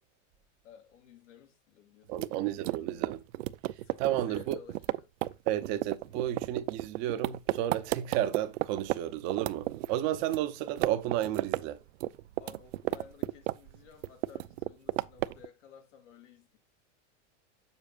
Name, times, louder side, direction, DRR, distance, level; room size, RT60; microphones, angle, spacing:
voice 1, 0.6-3.0 3.8-5.1 6.0-6.2 12.4-16.6, left 7 dB, 90° left, 2.9 m, -55 dB
voice 2, 2.1-3.2 4.0-4.6 5.5-11.8, right 12 dB, 35° right, 0.8 m, -32 dB
sound 1, 2.1-9.0 9.3-10.4 10.7-11.6 11.9-13.8 14.0-15.5, right 17 dB, 85° right, 0.6 m, -32 dB
8.3 x 7.1 x 2.5 m
supercardioid pair, 175°, 36 cm